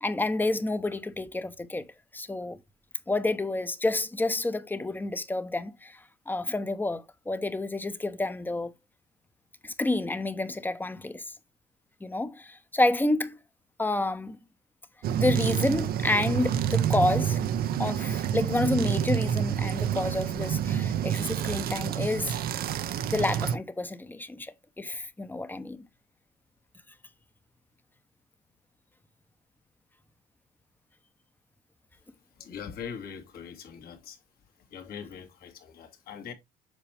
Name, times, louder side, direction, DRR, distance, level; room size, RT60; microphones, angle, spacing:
voice 1, 0.0-1.9 2.1-2.6 3.1-8.7 9.6-11.2 12.0-13.4 13.8-14.4 15.2-17.4 17.8-22.4 23.1-25.9, left 2 dB, 10° left, 0.8 m, -29 dB
sound 1, 15.0-23.6, right 9 dB, 65° right, 0.7 m, -28 dB
voice 2, 32.4-34.2 34.7-36.3, left 7 dB, 65° left, 2.0 m, -41 dB
7.4 x 4.4 x 3.4 m
cardioid pair, 110°, 17 cm